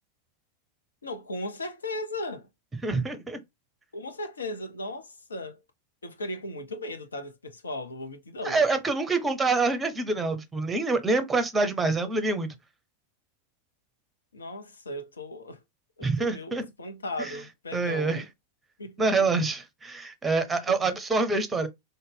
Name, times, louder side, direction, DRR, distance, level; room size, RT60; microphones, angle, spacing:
voice 1, 1.0-2.5 3.9-5.6 6.0-8.6 14.3-15.6 16.0-18.3 18.8-19.3 20.7-20.8, left 1 dB, 75° left, 0.6 m, -37 dB
voice 2, 2.8-3.4 8.4-12.5 16.0-16.7 17.2-17.3 17.7-18.2 19.0-21.7, right 3 dB, 15° right, 0.7 m, -26 dB
4.0 x 2.1 x 3.3 m
figure-of-eight pair, 90°, 0 cm